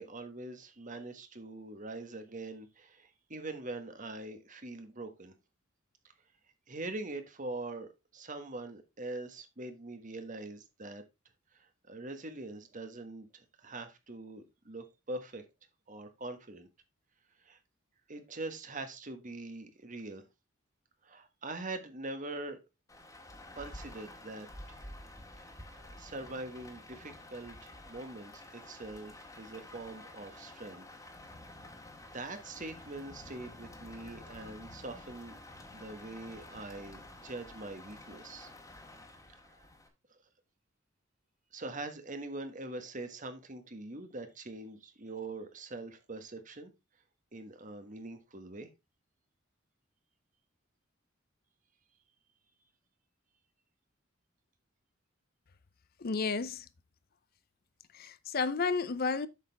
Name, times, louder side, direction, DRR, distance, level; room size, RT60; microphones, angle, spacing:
voice 1, 0.0-5.3 6.7-11.0 11.5-15.4 15.9-16.7 17.4-17.6 18.1-20.2 21.0-22.6 23.5-24.5 26.0-30.8 31.7-31.9 32.1-35.4 35.7-38.5 39.5-39.7 41.5-46.7 47.3-48.7, right 2 dB, 40° right, 1.5 m, -43 dB
Rain, 22.9-39.9, left 1 dB, 15° left, 1.8 m, -50 dB
voice 2, 56.0-56.7 57.9-59.3, left 4 dB, 50° left, 0.5 m, -32 dB
8.2 x 6.7 x 3.4 m
head